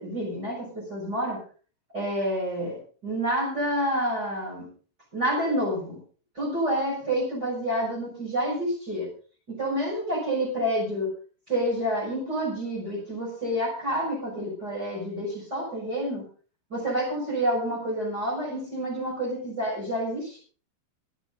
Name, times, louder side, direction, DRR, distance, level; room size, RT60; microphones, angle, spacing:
voice 1, 0.0-1.4 1.9-2.8 3.0-4.7 5.1-6.0 6.3-9.1 9.5-11.1 11.5-16.2 16.7-20.4, equal, 20° right, -4 dB, 6.6 m, -28 dB
25.0 x 9.3 x 4.0 m, 0.39 s
omnidirectional pair, 5.7 m